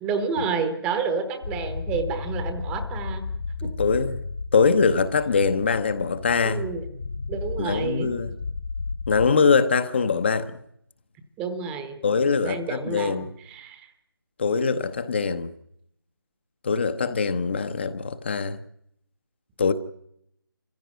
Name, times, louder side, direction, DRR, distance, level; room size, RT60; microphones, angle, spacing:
voice 1, 0.0-3.2 3.6-3.7 6.4-6.8 7.3-8.1 11.4-12.0 12.4-13.2 13.4-13.9, right 5 dB, 5° right, 8 dB, 1.0 m, -29 dB
sound 1, 1.4-9.3, left 4 dB, 45° left, 1.7 m, -34 dB
voice 2, 3.6-4.2 4.5-6.6 7.6-8.3 9.1-10.5 12.0-13.3 14.4-15.5 16.6-18.6 19.6-19.7, left 5 dB, 30° left, 10 dB, 0.9 m, -23 dB
24.0 x 15.5 x 9.3 m, 0.75 s
figure-of-eight pair, 165°, 12 cm